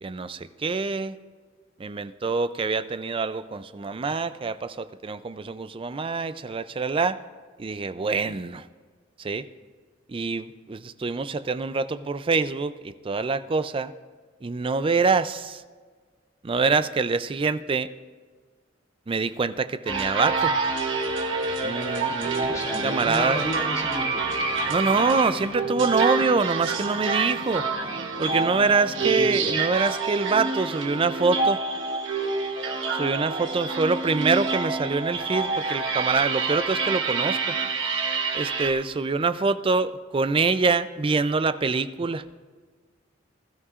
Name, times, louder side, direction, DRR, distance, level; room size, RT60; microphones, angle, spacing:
voice 1, 0.0-1.2 1.8-7.2 7.6-8.7 9.2-9.5 10.1-13.9 14.4-15.6 16.4-17.9 19.1-20.5 21.6-22.5 22.8-23.5 24.7-27.7 28.2-31.6 32.9-37.6 38.3-42.2, right 4 dB, 30° right, 13 dB, 0.4 m, -25 dB
sound 1, 19.9-38.7, right 4 dB, 85° right, 1.3 m, -27 dB
sound 2, 20.5-20.6 20.9-29.1, left 1 dB, 45° left, 1.3 m, -45 dB
voice 2, 22.5-24.3 29.0-29.6, equal, 20° left, -5 dB, 2.7 m, -33 dB
20.5 x 12.5 x 2.5 m, 1.5 s
head